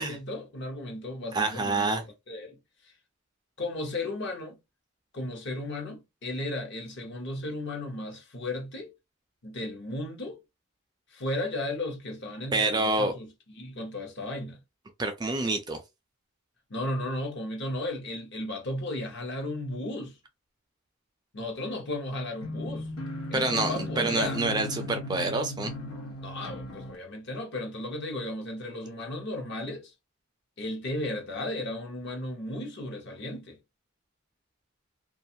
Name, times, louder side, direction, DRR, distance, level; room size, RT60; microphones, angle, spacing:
voice 1, 0.0-1.9 2.3-2.6 2.8-2.9 3.6-4.6 5.1-8.9 9.4-10.4 11.1-13.3 13.6-14.6 16.7-20.2 21.3-22.9 23.3-24.4 26.2-29.9 30.6-33.6, left 1 dB, 55° left, 0.8 m, -35 dB
voice 2, 1.3-2.0 12.5-13.1 15.0-15.8 23.3-25.7, right 2 dB, 20° right, 0.3 m, -27 dB
sound 1, 22.4-27.0, left 1 dB, 90° left, 0.9 m, -36 dB
2.4 x 2.3 x 2.7 m
head